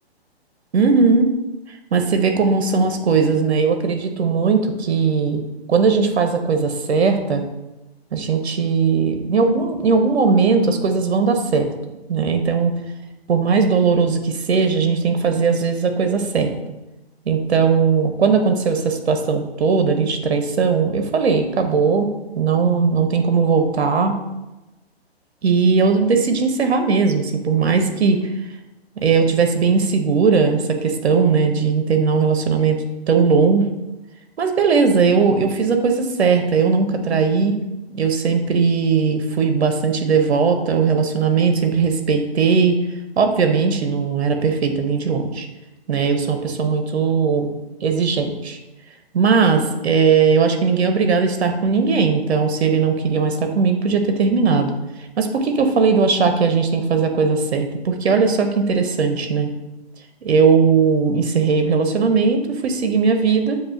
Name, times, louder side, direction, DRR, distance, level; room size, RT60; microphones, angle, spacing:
voice 1, 0.7-1.3 1.9-5.4 5.7-7.4 8.1-11.7 12.1-12.7 13.3-16.5 17.3-22.1 22.3-24.2 25.4-28.3 29.0-32.8 33.1-33.7 34.4-37.6 37.9-42.8 43.2-45.5 45.9-47.5 47.8-48.6 49.1-54.7 55.2-59.5 60.2-63.6, right 5 dB, 75° right, 6 dB, 0.8 m, -18 dB
7.3 x 2.7 x 2.6 m, 1.0 s
hypercardioid pair, 160°, 32 cm